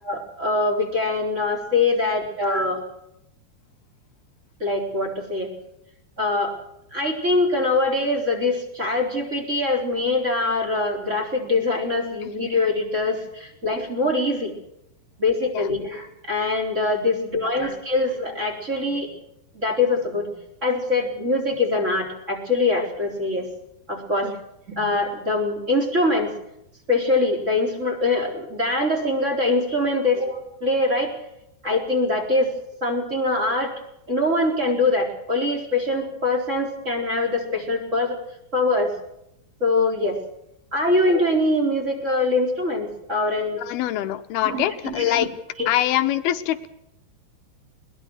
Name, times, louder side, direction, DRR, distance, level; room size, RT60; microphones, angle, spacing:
voice 1, 0.0-2.8 4.6-5.5 6.2-6.5 6.9-14.5 15.2-19.1 19.5-20.3 20.6-23.5 23.9-24.3 24.7-26.3 26.9-31.1 31.6-32.5 32.8-33.7 34.1-38.2 38.5-38.9 39.6-40.2 40.7-43.6 44.4-45.2 45.6-45.7, left 2 dB, 15° right, 4 dB, 4.0 m, -23 dB
voice 2, 43.6-45.3 45.7-46.7, left 13 dB, 75° left, 10 dB, 2.7 m, -24 dB
21.0 x 21.0 x 6.3 m, 0.82 s
omnidirectional pair, 4.9 m